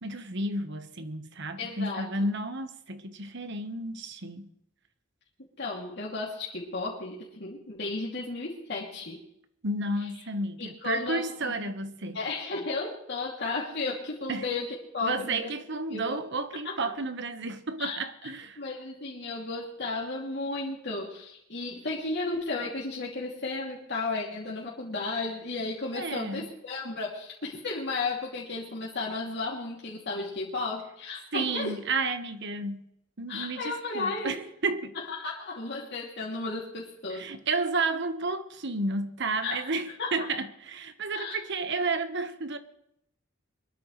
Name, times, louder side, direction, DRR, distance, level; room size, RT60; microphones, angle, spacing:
voice 1, 0.0-4.5 9.6-12.2 14.3-14.5 15.0-18.6 25.9-26.5 31.3-32.9 33.2-34.9 37.1-42.6, right 3 dB, 65° right, 1.4 m, -32 dB
voice 2, 1.6-2.1 5.6-9.2 10.6-11.3 12.1-15.5 15.9-16.2 16.6-16.9 17.8-18.0 18.6-31.8 33.3-34.4 34.9-37.3 39.4-39.7 40.0-40.3 41.1-41.4, left 3 dB, 60° left, 2.9 m, -34 dB
23.5 x 13.0 x 3.3 m
head